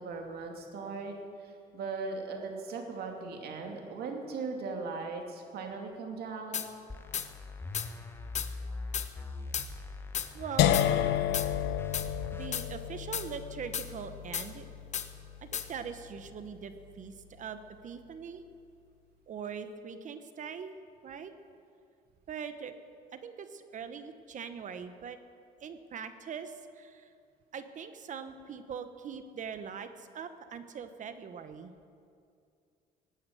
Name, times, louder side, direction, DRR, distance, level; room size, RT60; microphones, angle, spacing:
voice 1, 0.0-6.6, right 4 dB, 70° right, 3 dB, 2.5 m, -39 dB
sound 1, 6.5-6.7 7.1-7.3 7.7-7.9 8.4-8.5 8.9-9.1 9.5-9.7 10.1-10.3 10.7-10.9 11.3-11.5 11.9-12.1 12.5-12.7 13.1-13.3 13.7-13.9 14.3-14.5 14.9-15.1 15.5-15.7, left 8 dB, 45° left, 1.0 m, -33 dB
sound 2, 6.9-12.5, left 3 dB, 15° left, 1.0 m, -41 dB
voice 2, 10.3-10.9 12.0-14.7 15.4-17.6 17.8-18.4 19.3-21.3 22.3-22.7 23.1-25.2 25.6-27.1 27.5-31.7, right 6 dB, 50° right, 10 dB, 1.2 m, -42 dB
sound 3, 10.6-16.5, left 11 dB, 85° left, 0.8 m, -31 dB
17.5 x 9.8 x 7.8 m, 2.4 s
cardioid pair, 110°, 17 cm